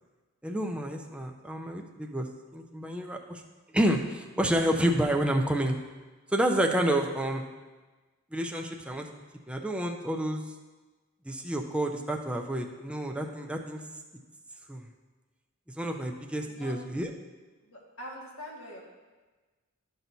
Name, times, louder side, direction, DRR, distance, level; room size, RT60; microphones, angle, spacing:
voice 1, 0.4-2.3 2.5-3.4 3.7-5.8 6.3-7.5 8.3-9.1 9.5-10.4 11.3-13.8 14.7-14.8 15.8-17.1, right 1 dB, 5° right, 2 dB, 0.6 m, -29 dB
voice 2, 16.4-16.7 17.6-18.8, equal, 70° left, -4 dB, 1.9 m, -44 dB
12.5 x 5.9 x 2.7 m, 1.3 s
head